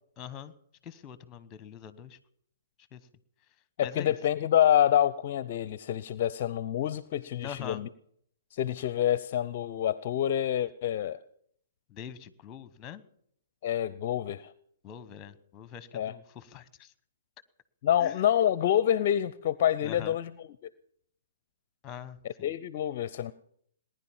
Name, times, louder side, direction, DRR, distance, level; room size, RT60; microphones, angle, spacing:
voice 1, 0.2-0.5 0.8-2.2 2.9-3.0 3.8-4.1 7.4-7.8 11.9-13.0 14.8-16.9 18.0-18.2 19.8-20.2 21.8-22.5, left 8 dB, 20° left, 17 dB, 1.1 m, -43 dB
voice 2, 3.8-7.9 8.5-11.2 13.6-14.5 15.9-16.1 17.8-20.3 22.4-23.3, left 11 dB, 45° left, 18 dB, 0.6 m, -27 dB
19.0 x 10.5 x 7.2 m, 0.68 s
figure-of-eight pair, 125°, 0 cm